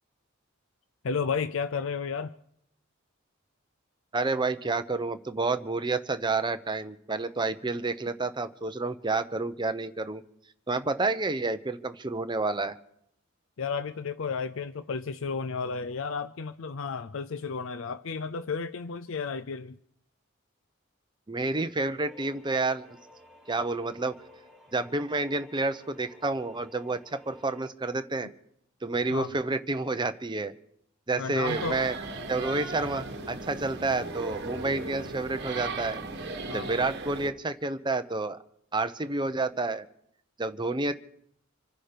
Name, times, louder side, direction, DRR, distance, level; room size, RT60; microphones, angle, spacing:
voice 1, 1.0-2.3 13.6-19.8 29.1-29.3 31.2-31.8 32.8-33.3 36.5-36.9, left 5 dB, 70° left, 0.5 m, -33 dB
voice 2, 4.1-10.2 10.7-12.8 21.3-22.9 23.5-24.2 24.7-28.3 28.8-30.5 31.1-32.0 32.3-36.0 36.5-38.4 38.7-39.9 40.4-40.9, right 3 dB, 20° right, 0.8 m, -29 dB
sound 1, 22.0-27.7, left 1 dB, ahead, 2.5 m, -54 dB
sound 2, 31.4-37.3, right 3 dB, 55° right, 1.4 m, -37 dB
26.5 x 10.0 x 5.1 m
head